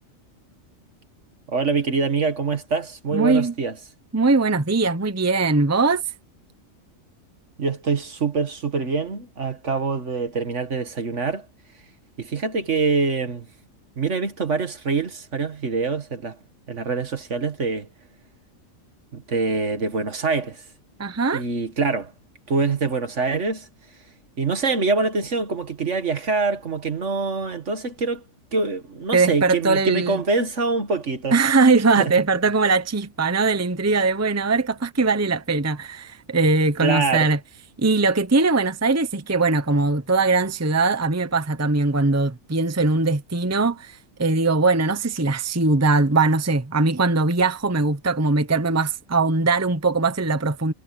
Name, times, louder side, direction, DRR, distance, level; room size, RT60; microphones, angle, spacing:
voice 1, 1.5-3.8 7.6-11.5 12.2-13.5 14.0-16.4 16.7-17.9 19.1-20.6 21.3-22.1 22.5-23.7 24.4-28.2 28.5-31.4 32.0-32.1 36.8-37.3, right 4 dB, 60° right, 2.1 m, -25 dB
voice 2, 3.1-3.5 4.1-6.0 21.0-21.4 29.1-30.2 31.3-37.4 37.8-50.7, right 3 dB, 15° right, 0.9 m, -21 dB
omnidirectional pair, 1.4 m